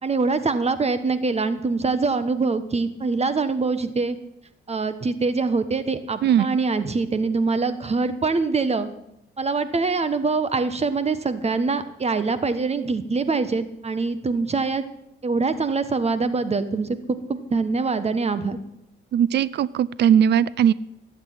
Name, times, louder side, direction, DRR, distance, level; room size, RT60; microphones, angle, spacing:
voice 1, 0.0-4.2 4.7-8.9 9.4-14.8 15.2-18.6, right 4 dB, 30° right, 12 dB, 1.2 m, -24 dB
voice 2, 19.1-20.7, right 9 dB, 60° right, 19 dB, 0.5 m, -19 dB
16.5 x 8.1 x 9.5 m, 0.80 s
cardioid pair, 90°, 20 cm